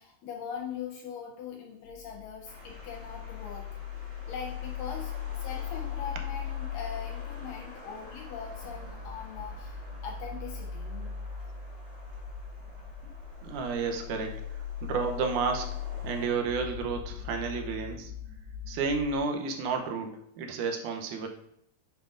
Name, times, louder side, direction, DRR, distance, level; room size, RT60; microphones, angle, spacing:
voice 1, 0.0-3.8 4.3-11.2, left 6 dB, 80° left, 0 dB, 2.1 m, -41 dB
sound 1, 1.8-19.2, left 8 dB, 35° left, 1.3 m, -39 dB
sound 2, 2.4-16.3, right 1 dB, 30° right, 1.0 m, -51 dB
voice 2, 13.4-15.7 16.0-18.1 18.7-21.3, right 5 dB, 80° right, 3 dB, 1.8 m, -31 dB
8.9 x 5.3 x 2.5 m, 0.72 s
omnidirectional pair, 4.5 m